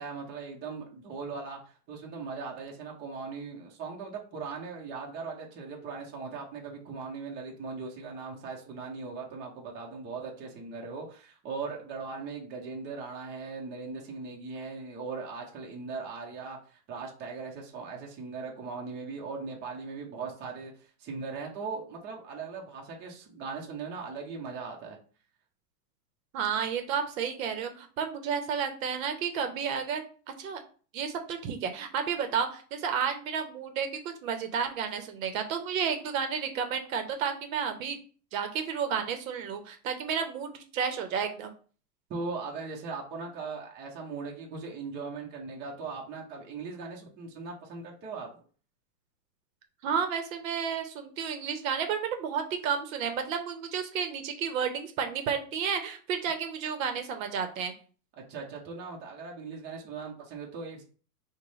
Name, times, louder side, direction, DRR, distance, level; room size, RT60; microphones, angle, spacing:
voice 1, 0.0-1.6 1.9-25.0 42.1-48.4 58.3-60.8, right 4 dB, 20° right, -1 dB, 0.6 m, -39 dB
voice 2, 26.3-30.0 30.4-30.6 30.9-38.0 38.3-41.5 49.8-57.7, right 7 dB, 55° right, 7 dB, 0.8 m, -31 dB
5.0 x 2.2 x 3.1 m, 0.40 s
supercardioid pair, 135°, 49 cm